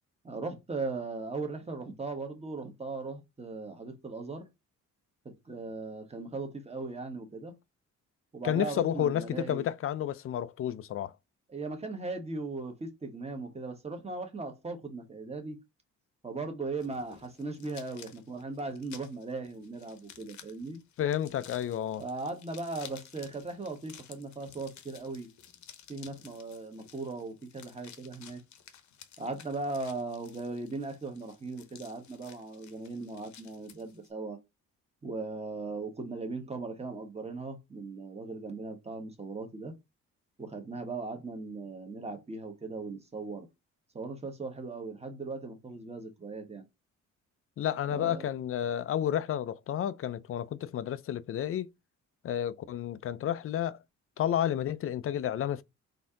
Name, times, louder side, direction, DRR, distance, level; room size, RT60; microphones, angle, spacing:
voice 1, 0.2-4.5 5.4-7.5 8.3-9.7 11.5-15.6 16.2-20.8 22.0-25.3 25.9-28.4 29.2-34.4 35.0-39.7 40.4-43.5 43.9-46.6 47.9-48.3, right 3 dB, 20° right, 1.3 m, -38 dB
voice 2, 8.4-11.1 21.0-22.0 47.6-51.7 52.2-53.8 54.2-55.6, left 10 dB, 50° left, 0.4 m, -31 dB
sound 1, 16.8-34.1, left 9 dB, 70° left, 0.9 m, -54 dB
4.2 x 2.8 x 3.7 m
cardioid pair, 110°, 30 cm